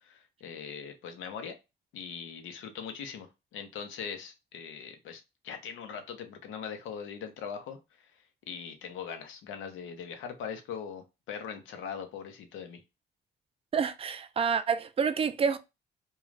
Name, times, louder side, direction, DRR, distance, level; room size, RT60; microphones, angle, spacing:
voice 1, 0.0-1.5 1.9-7.8 8.5-12.8, left 7 dB, 85° left, 0.7 m, -41 dB
voice 2, 13.7-15.6, right 6 dB, 30° right, 0.4 m, -28 dB
2.5 x 2.3 x 3.1 m
cardioid pair, 90°, 20 cm